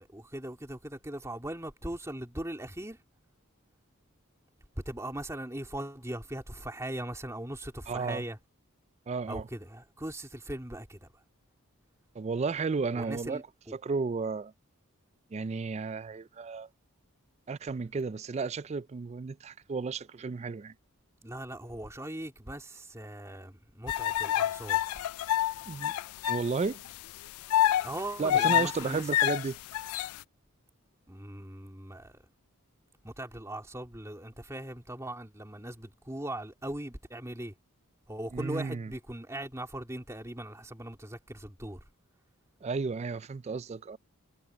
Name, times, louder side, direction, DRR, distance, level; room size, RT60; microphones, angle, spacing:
voice 1, 0.0-3.0 4.7-8.4 9.3-11.1 12.9-13.8 21.2-24.8 27.8-29.1 31.1-32.2 33.0-37.5 38.1-41.8, right 1 dB, 15° right, 2.6 m, -39 dB
voice 2, 7.9-8.2 9.1-9.5 12.1-13.4 13.7-14.5 15.3-16.7 17.5-20.7 25.7-25.9 26.3-26.8 28.2-29.6 38.3-38.9 42.6-44.0, right 4 dB, 30° right, 0.3 m, -33 dB
sound 1, 23.9-26.4 26.9-27.0 27.5-30.2, left 12 dB, 85° left, 0.3 m, -27 dB
head